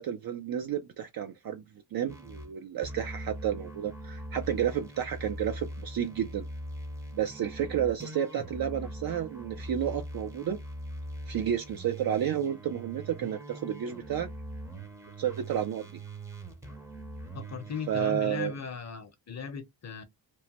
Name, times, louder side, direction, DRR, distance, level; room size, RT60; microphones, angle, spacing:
voice 1, 0.0-1.6 1.9-6.5 7.1-10.6 11.3-14.3 15.2-15.9 17.9-18.5, right 9 dB, 55° right, 0.5 m, -31 dB
sound 1, 2.1-2.5 2.8-18.0, right 1 dB, 5° right, 0.6 m, -42 dB
voice 2, 17.3-20.0, left 6 dB, 40° left, 0.7 m, -37 dB
3.0 x 2.1 x 2.8 m
wide cardioid pair, 140°, 43 cm